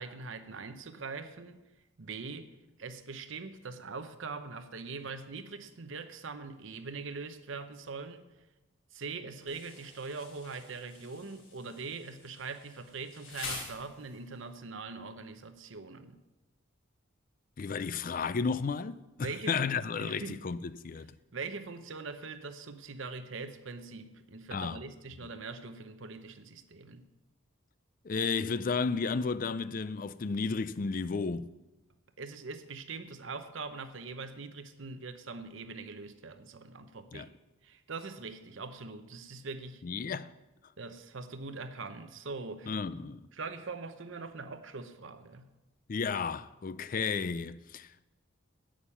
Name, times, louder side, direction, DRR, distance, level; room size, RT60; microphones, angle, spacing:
voice 1, 0.0-1.6 2.0-2.5 2.8-8.2 8.9-16.2 19.2-19.6 20.0-20.4 21.3-27.1 32.2-37.3 37.6-39.8 40.8-42.8 43.3-45.5, right 4 dB, 70° right, 0.8 m, -42 dB
Insect, 9.5-14.4, left 3 dB, 85° left, 4.5 m, -46 dB
voice 2, 17.6-20.6 20.8-21.1 24.5-24.8 28.0-31.5 37.1-37.3 39.8-40.3 42.7-43.2 45.9-48.1, left 5 dB, 40° left, 0.4 m, -33 dB
11.0 x 8.7 x 5.7 m
head